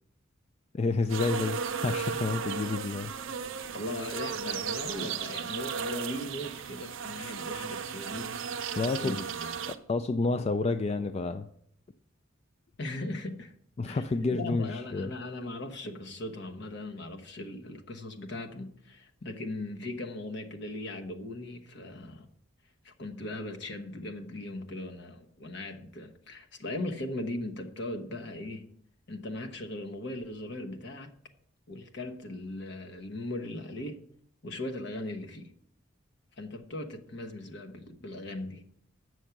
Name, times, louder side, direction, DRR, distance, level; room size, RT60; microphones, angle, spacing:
voice 1, 0.7-3.1 8.8-9.2 9.7-11.5 13.8-15.1, left 3 dB, 30° left, 0.3 m, -29 dB
sound 1, 1.1-9.8, right 6 dB, 75° right, 0.6 m, -35 dB
voice 2, 3.7-8.3 8.7-9.5 12.8-13.5 13.9-22.3 22.8-28.7 29.1-31.1 31.7-34.0 34.4-35.5 36.4-38.6, left 1 dB, 60° left, 1.1 m, -38 dB
8.0 x 6.3 x 5.8 m
head